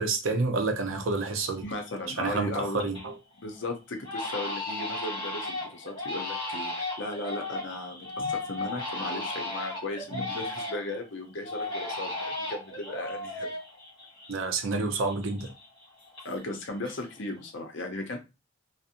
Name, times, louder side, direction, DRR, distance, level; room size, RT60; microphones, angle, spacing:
voice 1, 0.0-1.6 2.2-3.2 8.2-8.3 10.1-10.2 14.3-15.5, right 3 dB, 80° right, 0.5 m, -29 dB
Crying sobbing, 0.9-1.0 1.4-1.9 2.3-3.1 3.4-3.6 4.0-11.0 11.4-14.8 15.0-16.6 16.8-17.4, left 2 dB, 25° left, 1.2 m, -35 dB
voice 2, 1.6-2.8 3.4-13.5 16.2-18.2, left 2 dB, 60° left, 0.6 m, -36 dB
2.5 x 2.0 x 2.8 m
head